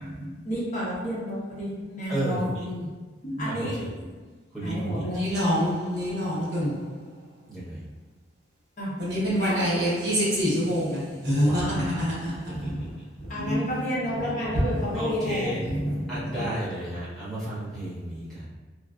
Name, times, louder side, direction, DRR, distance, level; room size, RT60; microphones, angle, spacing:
voice 1, 0.5-2.9 3.4-3.7 4.6-5.2 8.8-8.9 9.4-9.7 11.6-11.9 12.5-12.8 13.3-16.5, equal, 40° left, 0.8 m, -29 dB
voice 2, 2.1-2.7 3.5-4.0 4.5-5.3 7.5-7.8 11.4-12.1 12.5-12.9 13.5-13.6 14.9-15.7 16.1-18.5, right 1 dB, ahead, 0.9 m, -33 dB
voice 3, 5.1-6.8 9.0-12.5, equal, 60° right, 1.0 m, -26 dB
3.1 x 2.3 x 2.4 m
head